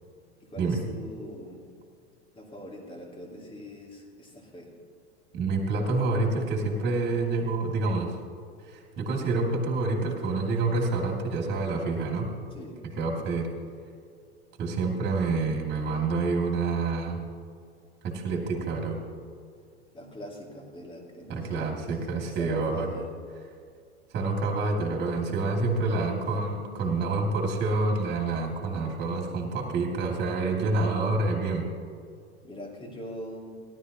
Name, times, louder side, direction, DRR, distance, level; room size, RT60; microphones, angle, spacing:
voice 1, 0.4-1.6 2.3-4.7 12.5-12.8 19.9-21.9 22.2-23.1 32.4-33.6, equal, 15° left, -1 dB, 2.9 m, -42 dB
voice 2, 5.3-8.1 8.7-12.3 13.0-13.5 14.6-17.2 18.0-19.0 21.3-22.9 24.1-31.6, right 3 dB, 30° right, 1 dB, 2.9 m, -27 dB
18.0 x 12.5 x 3.1 m, 2.3 s
figure-of-eight pair, 90°, 33 cm